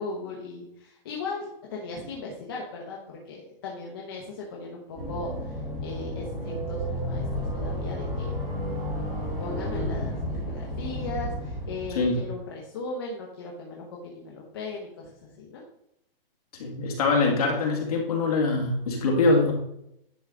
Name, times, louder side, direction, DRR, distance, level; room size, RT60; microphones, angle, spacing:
voice 1, 0.0-8.4 9.4-15.1 15.4-15.6, left 3 dB, 25° left, -2 dB, 0.8 m, -38 dB
sound 1, 4.9-12.3, equal, 10° right, 1.6 m, -32 dB
voice 2, 16.6-19.5, left 3 dB, 40° left, 0 dB, 1.9 m, -23 dB
10.0 x 4.7 x 3.7 m, 0.78 s
hypercardioid pair, 180°, 29 cm